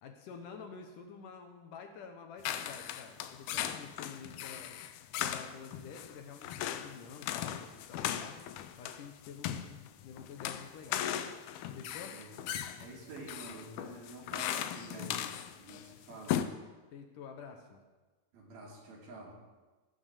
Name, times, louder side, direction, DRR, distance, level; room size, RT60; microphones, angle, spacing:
voice 1, 0.0-4.7 5.2-8.5 8.8-11.3 11.7-12.2 16.9-17.8, left 6 dB, 70° left, 5 dB, 2.4 m, -49 dB
sound 1, 2.4-16.5, left 11 dB, 85° left, 2.6 m, -38 dB
voice 2, 12.8-16.4 18.3-19.4, right 2 dB, 75° right, -3 dB, 4.6 m, -48 dB
18.0 x 6.1 x 6.7 m, 1.3 s
omnidirectional pair, 4.3 m